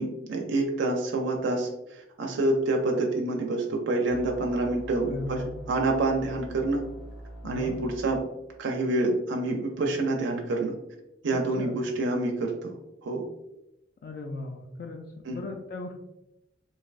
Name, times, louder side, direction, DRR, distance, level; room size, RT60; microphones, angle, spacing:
voice 1, 0.0-5.4 5.7-6.8 7.4-8.2 8.6-10.7 11.2-12.7 13.0-13.3 15.3-15.4, right 2 dB, 65° right, 1 dB, 0.4 m, -27 dB
sound 1, 4.1-8.2, right 1 dB, ahead, 0.5 m, -43 dB
voice 2, 5.0-5.5 7.4-7.8 11.3-11.8 14.0-15.0 15.3-15.9, left 3 dB, 50° left, 2 dB, 0.3 m, -37 dB
3.2 x 2.6 x 2.4 m, 0.88 s
head